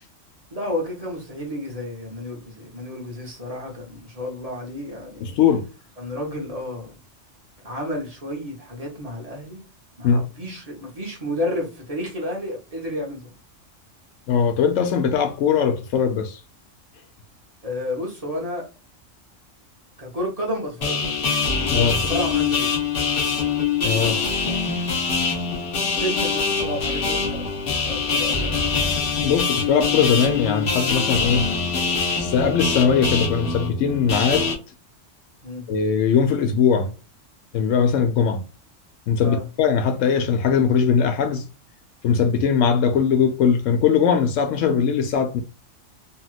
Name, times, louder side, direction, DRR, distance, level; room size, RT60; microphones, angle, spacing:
voice 1, 0.5-5.4 6.0-6.9 7.6-9.7 10.0-13.3 17.6-18.6 20.0-21.1 21.7-22.7 26.0-28.7 35.4-35.6 39.2-39.5, left 1 dB, 30° right, 1.0 m, -31 dB
voice 2, 5.2-5.7 10.0-10.2 14.3-16.4 21.7-22.0 23.8-24.2 29.2-31.5 32.2-34.5 35.7-36.9 37.5-38.4 39.1-41.4 42.0-45.4, left 6 dB, 80° left, 1.0 m, -20 dB
sound 1, 20.8-34.5, left 5 dB, 50° left, 1.0 m, -24 dB
3.0 x 2.8 x 2.3 m
omnidirectional pair, 1.3 m